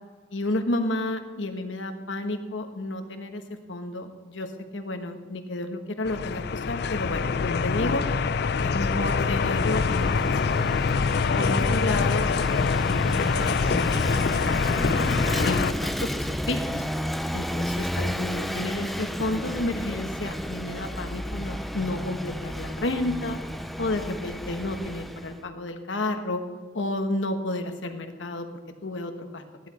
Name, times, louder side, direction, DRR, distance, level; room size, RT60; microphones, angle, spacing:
voice 1, 0.3-3.4 3.7-8.1 8.6-10.7 11.3-13.6 13.9-14.8 15.4-16.9 17.3-23.4 23.8-26.4 26.7-28.5 28.8-29.4, left 2 dB, 85° left, 6 dB, 1.3 m, -31 dB
sound 1, 6.0-15.7, left 5 dB, 60° left, 0.5 m, -25 dB
Vehicle / Engine, 8.9-25.4, equal, ahead, 0.4 m, -32 dB
14.5 x 11.0 x 4.3 m, 1.5 s
head